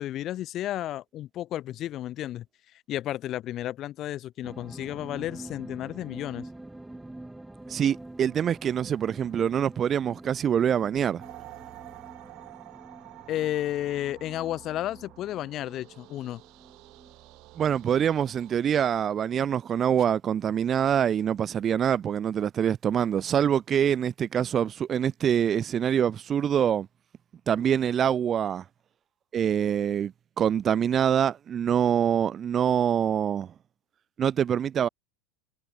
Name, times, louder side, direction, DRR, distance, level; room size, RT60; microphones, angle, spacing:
voice 1, 0.0-2.4 2.9-6.5 13.3-16.4, left 13 dB, 40° left, 0.3 m, -32 dB
sound 1, 4.4-19.0 19.4-19.5, right 1 dB, 5° right, 2.4 m, -47 dB
voice 2, 7.7-11.2 17.6-26.9 27.5-28.6 29.3-33.5 34.2-34.9, right 9 dB, 30° right, 0.5 m, -25 dB
sound 2, 11.2-18.5, right 21 dB, 45° right, 4.3 m, -49 dB
figure-of-eight pair, 80°, 0 cm